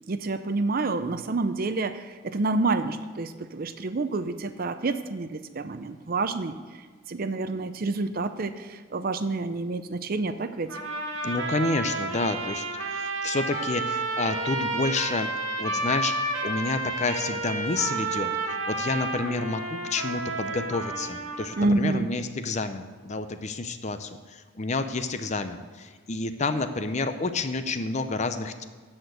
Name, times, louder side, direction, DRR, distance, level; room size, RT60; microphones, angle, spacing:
voice 1, 0.1-6.6 7.1-10.7 21.6-22.1, right 3 dB, 45° right, 10 dB, 0.5 m, -28 dB
sound 1, 10.7-21.7, right 2 dB, 80° right, 1.6 m, -31 dB
voice 2, 11.2-12.7 12.9-15.3 15.6-28.6, left 3 dB, 35° left, 9 dB, 0.5 m, -29 dB
13.0 x 4.4 x 7.9 m, 1.4 s
head